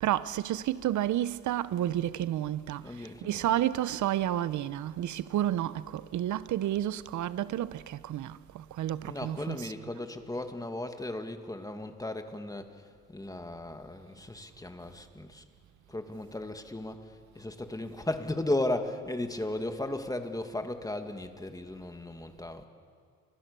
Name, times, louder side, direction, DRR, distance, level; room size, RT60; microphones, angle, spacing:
voice 1, 0.0-2.8 3.2-9.7, right 12 dB, 70° right, 0.9 m, -30 dB
voice 2, 2.8-3.5 9.0-15.4 15.9-22.7, left 1 dB, 10° left, 2.2 m, -36 dB
29.5 x 25.5 x 6.9 m
cardioid pair, 90°, 30 cm